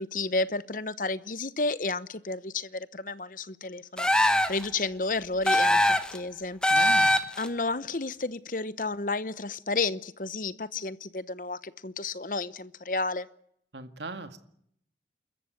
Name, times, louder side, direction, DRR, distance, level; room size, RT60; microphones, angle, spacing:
voice 1, 0.0-13.3, left 3 dB, 50° left, 0.9 m, -32 dB
sound 1, 4.0-4.7 5.4-6.2 6.6-7.5, left 1 dB, 5° left, 1.2 m, -22 dB
voice 2, 6.7-7.1 13.7-14.4, right 2 dB, 85° right, 2.1 m, -39 dB
28.5 x 14.5 x 9.4 m
head